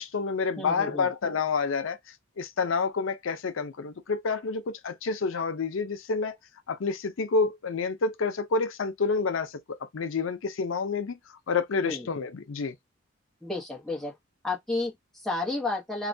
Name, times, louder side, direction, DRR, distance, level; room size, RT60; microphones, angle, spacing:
voice 1, 0.0-2.0 2.4-6.4 6.7-11.2 11.5-12.8, left 4 dB, 80° left, 0.5 m, -28 dB
voice 2, 0.6-1.1 11.8-12.1 13.4-14.1 14.4-16.1, left 2 dB, ahead, 0.8 m, -32 dB
3.1 x 2.2 x 2.6 m
head